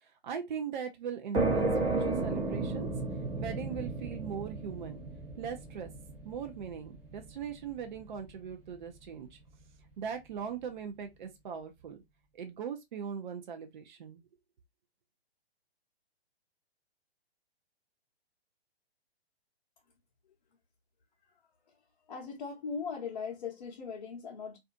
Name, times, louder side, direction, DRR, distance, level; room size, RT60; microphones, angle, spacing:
voice 1, 0.0-2.9 3.4-5.0 5.4-5.9 6.2-9.4 10.0-12.0 12.3-14.2, right 7 dB, 45° right, 0.6 m, -40 dB
sound 1, 1.3-8.7, right 3 dB, 15° right, 0.9 m, -34 dB
voice 2, 22.1-24.6, left 5 dB, 45° left, 0.8 m, -39 dB
2.5 x 2.4 x 2.3 m
figure-of-eight pair, 130°, 32 cm